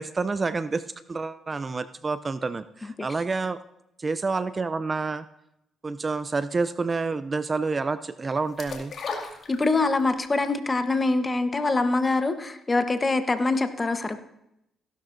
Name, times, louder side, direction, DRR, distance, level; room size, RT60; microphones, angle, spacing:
voice 1, 0.0-3.6 4.0-5.3 5.8-8.9, right 4 dB, 30° right, 13 dB, 0.4 m, -28 dB
sound 1, 8.6-10.1 10.5-10.6, left 4 dB, 55° left, 2.0 m, -35 dB
voice 2, 9.5-14.2, left 3 dB, 25° left, 9 dB, 1.0 m, -24 dB
16.0 x 12.0 x 2.6 m, 0.83 s
cardioid pair, 90°, 0 cm